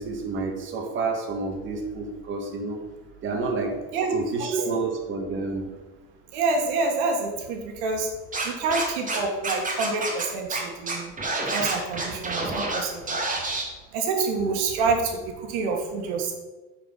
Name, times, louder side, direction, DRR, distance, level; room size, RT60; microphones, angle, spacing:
voice 1, 0.0-2.8 3.2-3.8 4.1-5.7 14.4-14.5, right 3 dB, 40° right, 2 dB, 1.6 m, -29 dB
voice 2, 6.3-8.1 8.4-11.1 11.5-13.2 13.9-16.3, right 4 dB, 85° right, 2 dB, 1.6 m, -27 dB
Scratching (performance technique), 8.3-9.2 9.4-10.2 10.5-10.6 10.9-12.8 13.1-13.6, right 2 dB, 25° right, 2.2 m, -28 dB
8.8 x 4.5 x 5.6 m, 1.2 s
cardioid pair, 130°, 30 cm